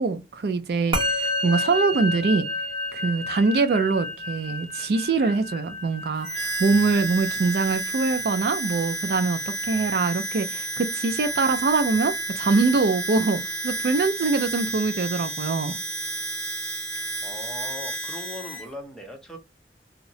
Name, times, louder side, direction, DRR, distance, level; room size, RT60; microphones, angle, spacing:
voice 1, 0.0-2.5 2.9-15.8, right 4 dB, 60° right, 0.3 m, -24 dB
Musical instrument, 0.9-10.5, left 2 dB, 30° right, 0.9 m, -31 dB
Harmonica, 6.2-18.7, right 2 dB, 75° right, 0.9 m, -31 dB
voice 2, 17.2-19.4, left 1 dB, 5° left, 0.6 m, -39 dB
2.8 x 2.0 x 2.5 m
head